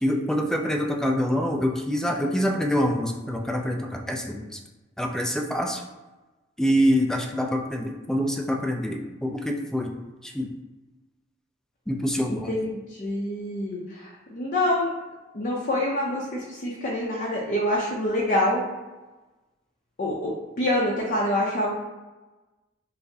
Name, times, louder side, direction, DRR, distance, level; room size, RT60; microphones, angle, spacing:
voice 1, 0.0-4.6 5.0-5.8 6.6-9.9 10.2-10.5 11.9-12.6, equal, 5° left, 2 dB, 0.3 m, -25 dB
voice 2, 12.5-14.9 15.3-18.6 20.0-21.7, left 1 dB, 50° left, -4 dB, 0.6 m, -26 dB
5.7 x 2.1 x 2.7 m, 1.1 s
head